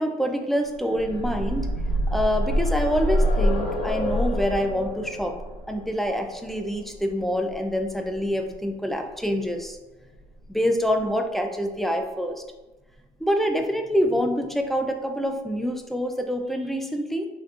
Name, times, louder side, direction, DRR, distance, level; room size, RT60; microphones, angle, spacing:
voice 1, 0.0-1.7 2.1-5.4 5.7-9.8 10.5-12.4 13.2-17.3, equal, ahead, 4 dB, 0.5 m, -26 dB
sound 1, 0.7-8.5 9.7-9.8 10.1-10.2, equal, 85° left, 0.7 m, -27 dB
4.3 x 3.1 x 2.5 m, 1.1 s
supercardioid pair, 80°, 14 cm